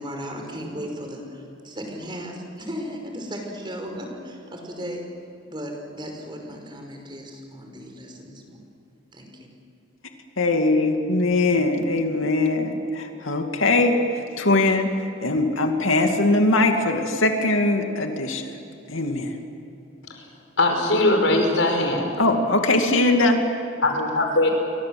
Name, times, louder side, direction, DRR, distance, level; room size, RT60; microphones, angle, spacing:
voice 1, 0.0-5.0 5.5-8.6 9.1-9.5, equal, 25° right, 2 dB, 5.2 m, -36 dB
voice 2, 10.4-18.6 18.9-19.4 22.2-23.4, left 2 dB, 90° left, 4 dB, 2.5 m, -21 dB
voice 3, 20.6-22.1 23.8-24.5, left 2 dB, 75° left, 3 dB, 5.7 m, -20 dB
30.0 x 24.0 x 7.8 m, 2.8 s
head